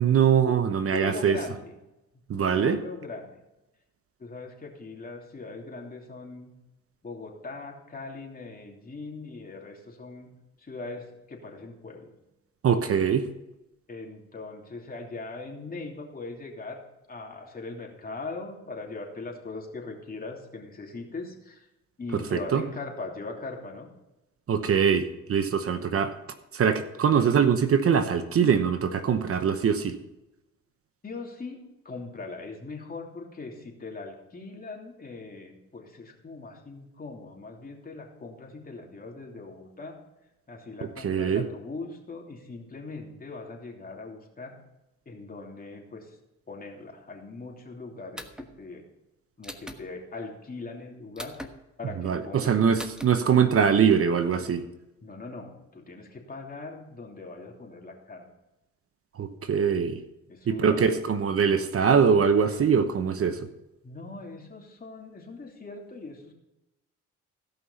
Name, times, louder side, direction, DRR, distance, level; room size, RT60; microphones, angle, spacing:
voice 1, 0.0-1.4 2.3-2.8 12.6-13.3 22.3-22.6 24.5-26.1 26.5-30.0 41.0-41.4 52.0-54.6 59.2-60.0 60.5-63.4, right 7 dB, 50° right, 9 dB, 1.0 m, -23 dB
voice 2, 0.9-1.7 2.1-3.4 4.2-6.5 7.0-10.3 10.6-12.1 12.9-13.1 13.9-16.8 17.1-21.7 22.0-23.9 31.0-31.6 31.8-40.0 40.5-44.6 45.0-46.2 46.5-48.8 49.4-51.4 51.8-52.6 55.0-58.3 60.3-60.8 63.8-66.3, left 3 dB, 30° left, 0 dB, 3.0 m, -40 dB
sound 1, 48.2-48.5 49.4-49.8 51.2-51.5 52.8-53.1, equal, 5° right, 1.3 m, -39 dB
16.5 x 5.7 x 5.6 m, 0.96 s
cardioid pair, 90°, 30 cm